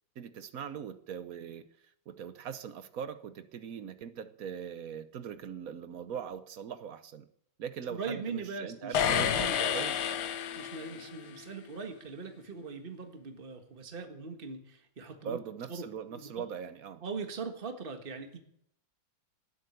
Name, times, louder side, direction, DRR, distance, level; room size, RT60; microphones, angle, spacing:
voice 1, 0.2-1.7 2.1-7.3 7.6-10.0 15.2-17.0, right 7 dB, 55° right, 1.1 m, -41 dB
voice 2, 7.9-9.7 10.6-15.4 15.7-16.5 17.0-18.4, right 4 dB, 30° right, 1.8 m, -41 dB
sound 1, 8.9-11.2, left 9 dB, 65° left, 1.3 m, -30 dB
18.5 x 7.9 x 8.3 m
omnidirectional pair, 2.1 m